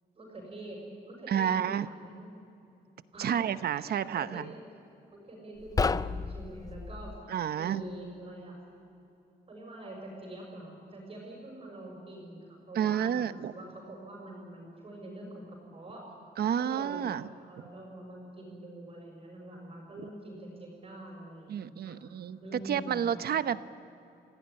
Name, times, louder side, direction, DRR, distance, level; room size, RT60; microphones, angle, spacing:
voice 1, 0.1-0.8 1.0-2.3 3.1-3.5 3.7-4.6 5.1-7.1 7.5-8.5 9.5-16.0 16.6-22.0 22.4-23.2, right 1 dB, 35° right, -1 dB, 6.2 m, -45 dB
voice 2, 1.3-1.9 3.2-4.5 7.3-7.8 12.7-13.5 16.4-17.3 21.5-22.4 22.7-23.6, right 9 dB, 65° right, 13 dB, 0.9 m, -30 dB
sound 1, 5.6-7.2, left 4 dB, 20° left, 0.5 m, -31 dB
27.0 x 17.0 x 9.8 m, 2.8 s
wide cardioid pair, 155°, 17 cm